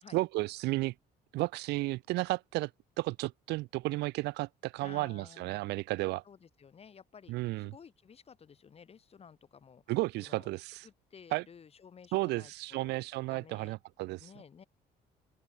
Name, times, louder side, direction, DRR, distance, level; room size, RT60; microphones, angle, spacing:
voice 1, 0.1-0.9 1.3-2.7 3.0-6.2 7.3-7.7 9.9-10.9 11.3-11.4 12.1-14.3, right 20 dB, 85° right, 0.7 m, -33 dB
voice 2, 4.8-5.6 6.2-9.8 10.2-10.6 10.8-12.9 13.3-13.8 14.2-14.6, left 6 dB, 35° left, 2.5 m, -54 dB
open air
cardioid pair, 110°, 17 cm